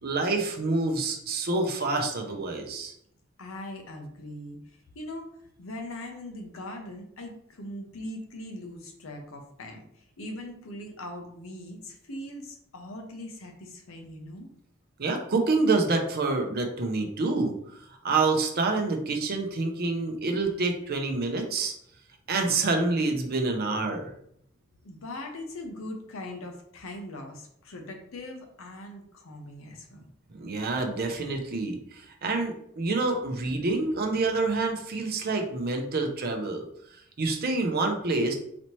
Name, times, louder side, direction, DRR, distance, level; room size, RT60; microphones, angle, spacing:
voice 1, 0.0-2.9 15.0-21.7 22.3-24.1 30.3-38.3, right 3 dB, 45° right, 3 dB, 0.6 m, -27 dB
voice 2, 3.4-5.3 5.6-14.5 24.8-30.1, left 1 dB, 70° left, 3 dB, 0.8 m, -41 dB
4.1 x 2.9 x 3.1 m, 0.70 s
head